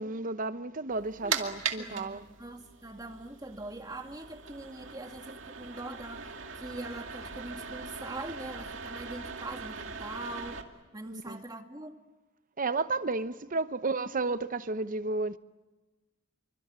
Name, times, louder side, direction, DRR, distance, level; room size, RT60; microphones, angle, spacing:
voice 1, 0.0-2.3 11.1-11.4 12.6-15.4, right 3 dB, 40° right, 0.9 m, -32 dB
sound 1, 0.9-10.6, right 6 dB, 70° right, 2.4 m, -40 dB
voice 2, 1.8-10.6 10.9-12.0, right 2 dB, 20° right, 2.1 m, -42 dB
26.5 x 24.5 x 8.9 m
head